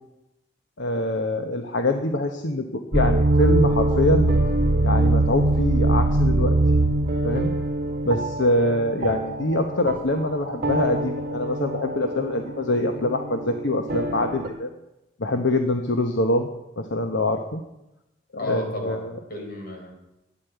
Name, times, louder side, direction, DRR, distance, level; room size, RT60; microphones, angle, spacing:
voice 1, 0.8-4.3 4.8-6.6 7.2-7.5 8.0-14.7 15.2-16.5 16.8-17.6 18.3-19.1, left 1 dB, 70° left, 5 dB, 1.1 m, -24 dB
sound 1, 2.9-14.5, right 2 dB, 55° right, 2.0 m, -23 dB
voice 2, 18.4-19.9, left 1 dB, 55° left, 2 dB, 4.0 m, -33 dB
12.5 x 9.8 x 8.2 m, 0.93 s
head